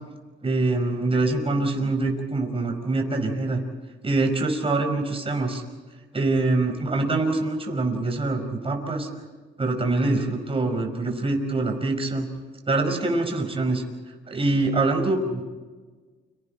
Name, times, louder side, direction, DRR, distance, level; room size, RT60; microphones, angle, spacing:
voice 1, 0.4-3.6 4.0-5.6 6.1-9.1 9.6-12.3 12.7-13.8 14.3-15.4, right 2 dB, 30° right, 3 dB, 5.4 m, -24 dB
30.0 x 26.5 x 4.5 m, 1.4 s
cardioid pair, 90°, 20 cm